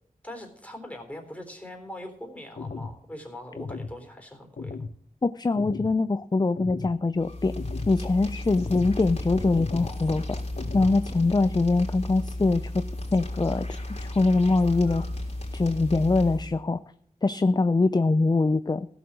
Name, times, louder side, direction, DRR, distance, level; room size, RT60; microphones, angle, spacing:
voice 1, 0.2-4.8, left 1 dB, 10° left, 3 dB, 3.7 m, -41 dB
sound 1, 2.6-3.0 3.6-4.0 4.6-5.0 5.6-6.0 6.6-7.0 7.6-8.0 8.6-9.0 9.6-10.0 10.6-11.0, left 4 dB, 70° left, 0.8 m, -36 dB
voice 2, 5.2-7.6 7.9-10.4 10.7-12.8 13.1-15.1 15.5-16.8 17.2-18.9, left 3 dB, 30° left, 13 dB, 0.4 m, -23 dB
sound 2, 7.2-16.6, left 1 dB, 50° left, 3.6 m, -34 dB
16.0 x 7.1 x 6.1 m, 0.68 s
wide cardioid pair, 75°, 14 cm